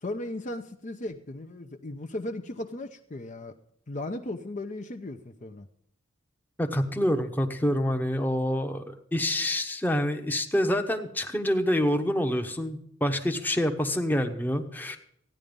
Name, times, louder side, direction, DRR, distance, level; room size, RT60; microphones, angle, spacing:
voice 1, 0.0-3.5 3.9-5.7, left 1 dB, 40° left, 6 dB, 0.7 m, -36 dB
voice 2, 6.6-15.0, equal, 10° left, 5 dB, 1.0 m, -27 dB
14.5 x 9.9 x 5.3 m, 0.72 s
head